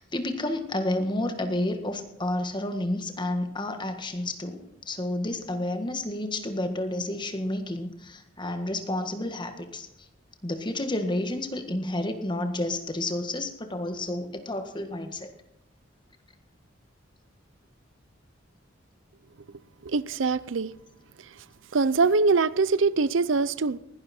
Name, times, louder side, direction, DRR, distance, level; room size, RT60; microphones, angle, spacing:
voice 1, 0.0-9.9 10.4-15.3, left 1 dB, 25° left, 1.7 m, -30 dB
voice 2, 19.8-20.7 21.2-21.3 21.7-23.8, right 4 dB, 90° right, 0.6 m, -23 dB
20.0 x 12.0 x 4.4 m
head